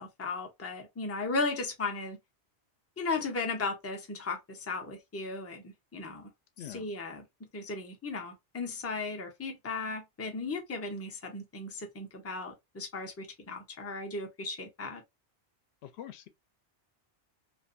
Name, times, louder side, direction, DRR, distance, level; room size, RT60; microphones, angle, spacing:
voice 1, 0.0-2.2 3.0-6.3 6.6-7.2 7.5-15.0, left 3 dB, 20° left, 0.4 m, -36 dB
voice 2, 6.6-6.9 15.8-16.3, left 11 dB, 70° left, 0.8 m, -44 dB
2.5 x 2.2 x 2.5 m
omnidirectional pair, 1.2 m